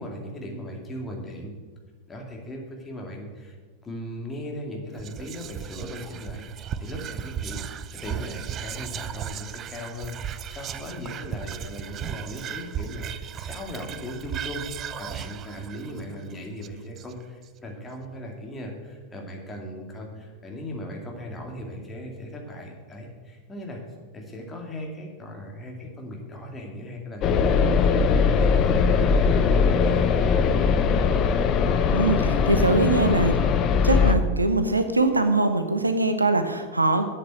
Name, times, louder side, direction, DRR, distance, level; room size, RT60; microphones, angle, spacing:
voice 1, 0.0-1.5 2.1-3.5 3.8-23.8 24.1-27.9 28.2-30.6, equal, 15° left, 0 dB, 2.5 m, -38 dB
Whispering, 5.0-17.4, right 9 dB, 30° right, 0.4 m, -36 dB
sound 1, 27.2-34.1, left 5 dB, 35° left, 0.7 m, -20 dB
voice 2, 31.9-33.3 33.8-37.1, right 2 dB, 85° right, 8 dB, 0.8 m, -22 dB
7.9 x 7.5 x 8.2 m, 1.4 s
figure-of-eight pair, 90°, 0 cm